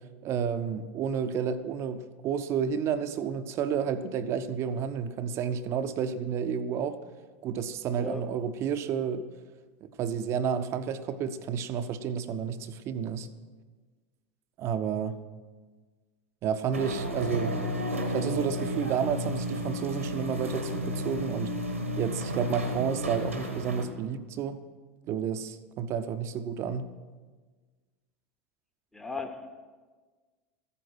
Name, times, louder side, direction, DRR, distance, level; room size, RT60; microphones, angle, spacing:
voice 1, 0.2-7.0 7.4-9.3 9.8-13.3 14.6-15.2 16.4-17.6 18.1-21.5 22.0-24.6 25.1-26.9, right 7 dB, 40° right, 0.8 m, -31 dB
sound 1, 16.7-23.9, equal, 85° right, 1.5 m, -32 dB
voice 2, 28.9-29.5, left 3 dB, 5° left, 1.0 m, -36 dB
14.0 x 9.7 x 6.2 m
figure-of-eight pair, 75°, 7 cm